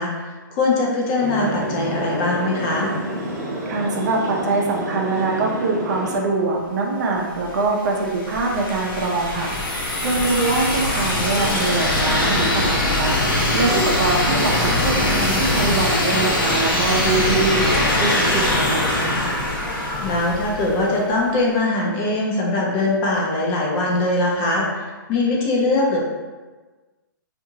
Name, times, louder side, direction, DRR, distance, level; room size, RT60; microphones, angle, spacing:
voice 1, 0.0-2.9 20.0-26.0, left 2 dB, 30° left, -2 dB, 0.5 m, -21 dB
sound 1, 1.2-6.2, right 1 dB, 35° right, 1.1 m, -29 dB
voice 2, 3.7-19.2, right 3 dB, 50° right, 0 dB, 0.5 m, -23 dB
sound 2, 7.4-21.1, left 1 dB, 90° left, 0.9 m, -22 dB
2.7 x 2.5 x 2.7 m, 1.3 s
hypercardioid pair, 145°, 11 cm